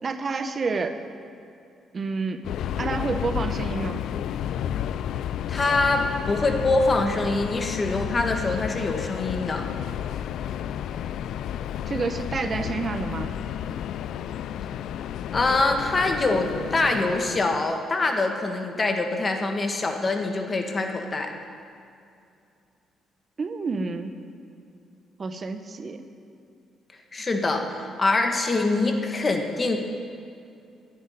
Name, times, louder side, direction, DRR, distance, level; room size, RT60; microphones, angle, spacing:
voice 1, 0.0-1.0 1.9-2.4 2.8-4.0 11.9-13.3 23.4-24.1 25.2-26.1, right 4 dB, 40° right, 8 dB, 1.1 m, -29 dB
Subway metro underground, 2.4-17.8, left 10 dB, 80° left, 0.4 m, -31 dB
voice 2, 5.5-9.7 15.3-21.3 27.1-29.8, left 2 dB, 30° left, 4 dB, 1.8 m, -24 dB
11.0 x 9.6 x 9.4 m, 2.5 s
cardioid pair, 90°, 0 cm